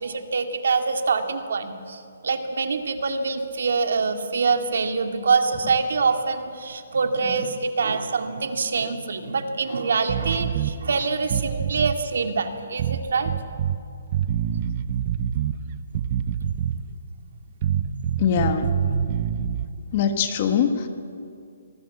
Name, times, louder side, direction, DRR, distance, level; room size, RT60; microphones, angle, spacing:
voice 1, 0.0-13.3, right 4 dB, 60° right, 6 dB, 2.1 m, -25 dB
sound 1, 10.1-10.8 11.2-12.0 12.8-13.8 14.1-15.6 15.9-16.9 17.6-19.7, right 9 dB, 25° right, 0.7 m, -26 dB
voice 2, 18.2-18.8 19.9-20.9, left 7 dB, 25° left, 8 dB, 1.3 m, -22 dB
25.5 x 19.0 x 8.4 m, 2.4 s
hypercardioid pair, 180°, 0 cm